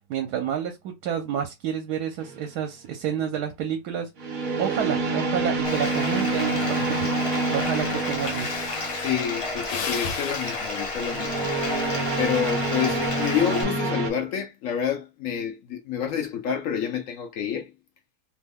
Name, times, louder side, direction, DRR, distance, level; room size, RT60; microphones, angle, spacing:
voice 1, 0.1-4.3 4.6-8.5, right 9 dB, 75° right, 1.1 m, -30 dB
sound 1, 2.2-2.5 4.2-9.3 11.0-14.1, right 3 dB, 50° right, 0.6 m, -27 dB
Bathtub (filling or washing), 5.6-13.6, left 3 dB, 45° left, 0.4 m, -32 dB
Breathing, 8.1-12.4 12.9-13.2, left 6 dB, 90° left, 1.3 m, -37 dB
voice 2, 9.0-11.5 12.2-17.7, left 8 dB, 70° left, 0.8 m, -28 dB
3.0 x 2.2 x 3.5 m
omnidirectional pair, 1.8 m